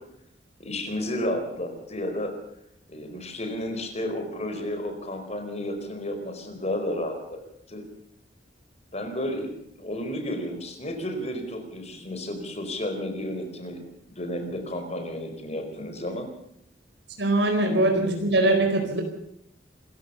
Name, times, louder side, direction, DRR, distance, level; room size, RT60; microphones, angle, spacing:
voice 1, 0.6-2.3 2.9-7.4 7.7-7.9 8.9-9.5 9.8-13.8 14.1-16.3, left 1 dB, 40° left, 6 dB, 4.5 m, -32 dB
voice 2, 17.2-19.0, right 2 dB, 80° right, 3 dB, 4.4 m, -22 dB
26.5 x 15.0 x 6.9 m, 0.74 s
head